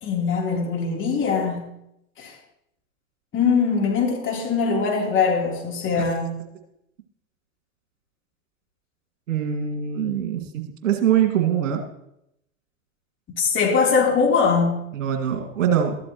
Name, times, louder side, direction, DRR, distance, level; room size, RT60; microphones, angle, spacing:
voice 1, 0.0-1.7 2.2-2.3 3.3-6.4 13.4-14.9, left 5 dB, 30° left, -2 dB, 3.5 m, -22 dB
voice 2, 9.3-11.8 14.9-16.0, right 9 dB, 65° right, 3 dB, 2.1 m, -23 dB
13.5 x 13.0 x 3.0 m, 0.81 s
figure-of-eight pair, 95°, 40 cm